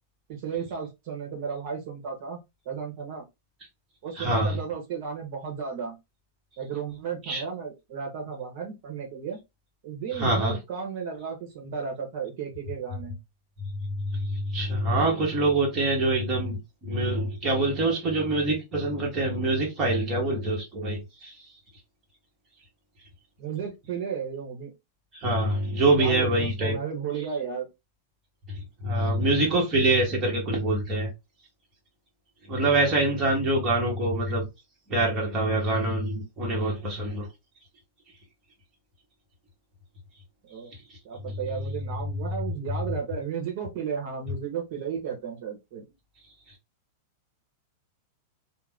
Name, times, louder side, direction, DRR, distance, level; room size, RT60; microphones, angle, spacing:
voice 1, 0.3-2.4 2.6-3.2 4.0-5.9 6.6-9.4 9.8-13.2 23.4-24.7 25.7-27.7 40.5-40.7 41.0-45.8, right 6 dB, 50° right, 0.9 m, -34 dB
voice 2, 4.2-4.6 7.3-7.4 10.2-10.6 13.8-21.3 25.2-26.7 28.8-31.1 32.5-34.4 34.9-37.3, right 2 dB, 20° right, 1.0 m, -25 dB
2.5 x 2.1 x 3.3 m
supercardioid pair, 170°, 0 cm